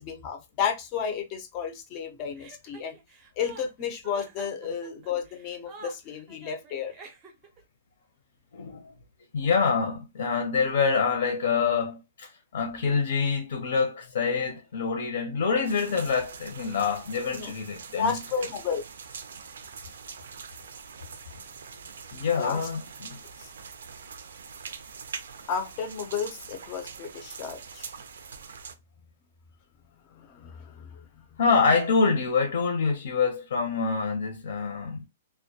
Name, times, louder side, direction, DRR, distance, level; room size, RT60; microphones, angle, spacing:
voice 1, 0.0-3.0 3.4-6.9 17.3-17.5 17.9-18.8 22.4-22.7 23.4-23.5 25.5-27.9 30.1-31.0, left 7 dB, 30° left, 0.4 m, -32 dB
Chuckle chortle, 2.4-7.6, right 4 dB, 25° right, 0.5 m, -48 dB
voice 2, 8.5-8.9 9.3-18.2 22.1-23.2 31.4-35.1, left 5 dB, 70° left, 0.6 m, -26 dB
sound 1, 15.6-28.7, right 6 dB, 90° right, 0.4 m, -43 dB
2.1 x 2.1 x 2.7 m
hypercardioid pair, 165°, 0 cm